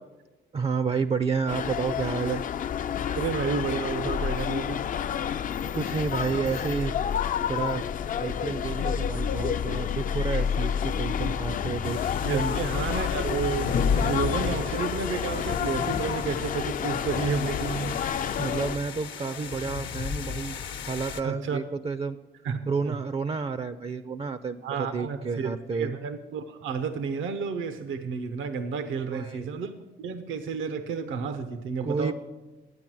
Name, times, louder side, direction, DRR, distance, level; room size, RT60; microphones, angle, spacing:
voice 1, 0.5-2.4 5.7-6.9 7.5-7.8 8.2-12.0 12.3-12.6 18.4-20.6 20.9-22.2 22.7-25.9 29.0-29.6 31.8-32.1, right 5 dB, 30° right, 12 dB, 0.4 m, -30 dB
sound 1, 1.5-18.8, left 8 dB, 45° left, 0.4 m, -29 dB
voice 2, 3.1-4.8 12.2-18.0 21.2-21.6 22.4-22.6 22.8-23.0 24.6-29.7 30.0-32.1, right 5 dB, 80° right, 10 dB, 0.7 m, -31 dB
sound 2, 11.8-21.2, left 6 dB, 70° left, 0.8 m, -33 dB
10.5 x 8.4 x 6.1 m, 1.1 s
cardioid pair, 90°, 20 cm